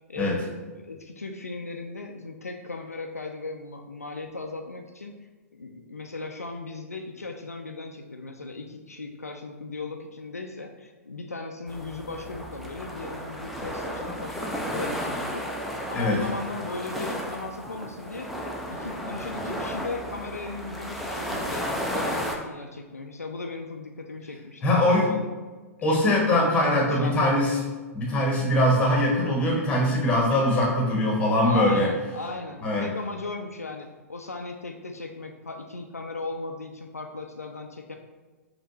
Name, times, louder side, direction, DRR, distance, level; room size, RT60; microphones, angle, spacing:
voice 1, 0.1-5.1 5.5-15.4 15.9-18.3 18.7-25.3 25.8-26.4 26.9-27.7 31.4-38.0, left 3 dB, 80° left, 4 dB, 0.4 m, -37 dB
sound 1, 11.7-22.4, equal, ahead, 0.4 m, -33 dB
voice 2, 24.6-25.1 25.8-27.6 27.9-31.9 32.6-32.9, left 1 dB, 15° left, -2 dB, 1.2 m, -22 dB
5.0 x 3.0 x 2.7 m, 1.3 s
figure-of-eight pair, 105°, 8 cm